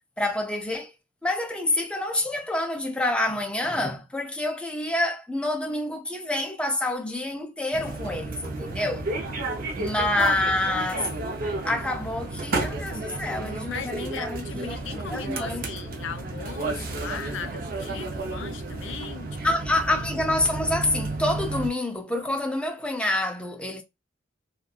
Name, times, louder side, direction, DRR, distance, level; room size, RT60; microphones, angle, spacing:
voice 1, 0.2-0.9 1.2-9.1 9.8-11.1 11.6-14.8 15.1-15.7 19.4-23.8, left 1 dB, 5° left, 0.4 m, -27 dB
sound 1, 7.7-21.7, right 2 dB, 45° right, 0.5 m, -32 dB
voice 2, 13.6-19.6, left 7 dB, 75° left, 0.4 m, -38 dB
2.6 x 2.3 x 2.3 m
head